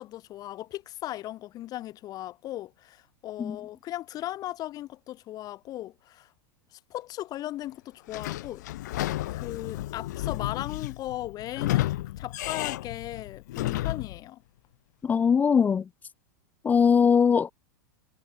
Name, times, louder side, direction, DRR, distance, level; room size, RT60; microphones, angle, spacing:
voice 1, 0.0-6.3 6.7-8.6 9.3-14.4, left 14 dB, 35° left, 5.4 m, -37 dB
Sliding door / Squeak, 8.1-14.2, left 15 dB, 60° left, 1.5 m, -32 dB
voice 2, 15.0-15.8 16.6-17.5, left 6 dB, 15° left, 0.4 m, -21 dB
figure-of-eight pair, 95°, 11 cm